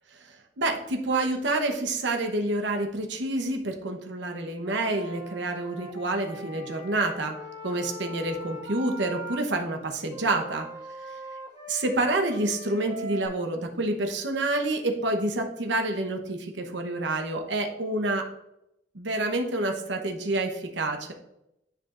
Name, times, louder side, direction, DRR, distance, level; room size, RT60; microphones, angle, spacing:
voice 1, 0.6-7.3 7.6-10.7 11.7-18.3 18.9-21.1, right 2 dB, 70° right, 4 dB, 0.9 m, -28 dB
Wind instrument woodwind instrument, 4.6-9.4 10.1-13.3, right 1 dB, 20° right, 1.8 m, -41 dB
10.0 x 5.0 x 2.5 m, 0.83 s
head